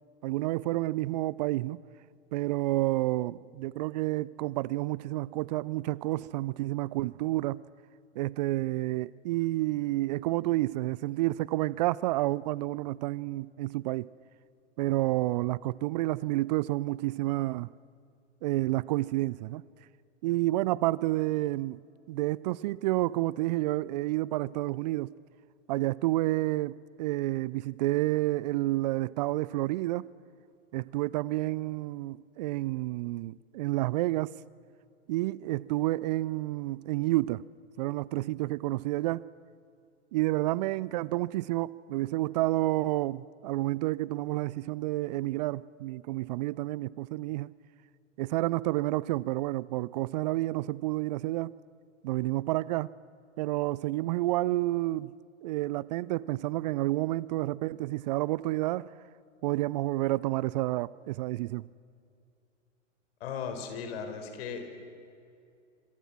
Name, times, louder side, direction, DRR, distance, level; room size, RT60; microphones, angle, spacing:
voice 1, 0.2-1.8 2.3-7.6 8.2-14.1 14.8-17.7 18.4-19.6 20.2-21.8 22.1-25.1 25.7-30.1 30.7-34.3 35.1-37.4 37.8-39.2 40.1-47.5 48.2-51.5 52.0-52.9 53.4-55.1 55.4-58.9 59.4-61.7, right 18 dB, 35° right, 0.5 m, -30 dB
voice 2, 63.2-64.8, left 6 dB, 55° left, 4.8 m, -37 dB
26.5 x 25.5 x 6.1 m
figure-of-eight pair, 105°, 37 cm